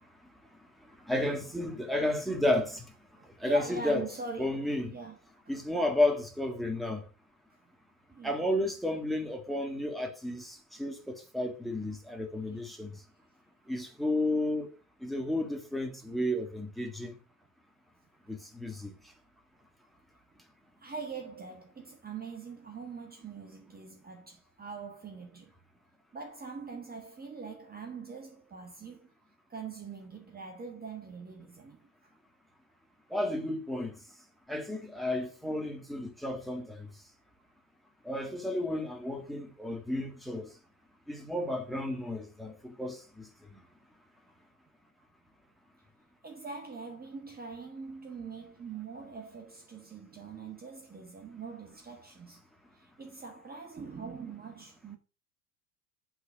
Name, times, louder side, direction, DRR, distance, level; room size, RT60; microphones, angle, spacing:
voice 1, 1.0-2.9 3.4-4.1 4.4-5.0 5.5-7.0 8.2-13.0 13.7-14.7 15.0-17.2 18.3-19.0 33.1-33.9 34.5-36.9 38.0-40.5 41.1-43.6, left 1 dB, ahead, 1.8 m, -32 dB
voice 2, 3.2-5.2 8.1-8.4 20.8-25.5 26.1-29.1 29.5-32.1 46.2-52.4 52.7-55.0, right 5 dB, 20° right, 1.5 m, -43 dB
8.6 x 4.0 x 6.0 m
hypercardioid pair, 85°, 49 cm